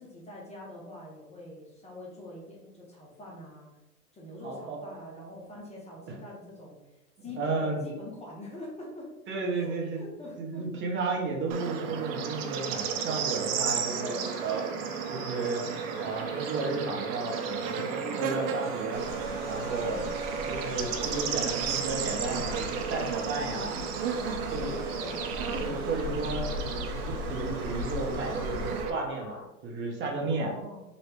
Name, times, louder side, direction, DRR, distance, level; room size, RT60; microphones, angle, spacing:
voice 1, 0.0-3.7 4.1-9.1 9.5-10.8 11.9-12.4 13.9-14.3 17.7-18.2 19.7-20.1 23.3-23.8 24.3-25.8 30.2-30.8, left 1 dB, 15° left, -4 dB, 0.6 m, -44 dB
voice 2, 4.4-5.1 6.1-6.2 7.2-7.8 9.3-10.0 10.4-14.6 15.1-15.7 16.0-19.0 19.4-20.0 20.5-23.8 24.5-24.7 25.6-30.5, right 3 dB, 25° right, -1 dB, 0.8 m, -33 dB
Bird / Insect, 11.5-28.9, right 7 dB, 45° right, 0.5 m, -33 dB
sound 1, 13.9-29.5, left 6 dB, 55° left, 0.6 m, -46 dB
sound 2, 18.9-28.9, left 2 dB, 90° right, 1.0 m, -39 dB
3.1 x 2.7 x 3.3 m, 0.97 s
hypercardioid pair, 105°, 44 cm